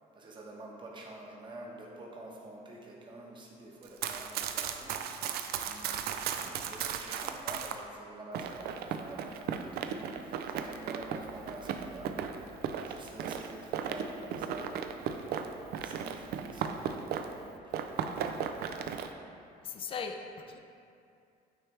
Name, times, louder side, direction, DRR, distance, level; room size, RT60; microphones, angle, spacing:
voice 1, 0.1-5.3 5.6-12.5 12.8-18.0, right 1 dB, 30° right, -2 dB, 0.9 m, -48 dB
Run, 3.8-7.8 8.3-17.4 17.7-19.1, right 7 dB, 70° right, 0.4 m, -36 dB
voice 2, 19.6-20.6, left 5 dB, 30° left, 6 dB, 0.4 m, -39 dB
9.0 x 3.3 x 3.2 m, 2.5 s
cardioid pair, 110°, 17 cm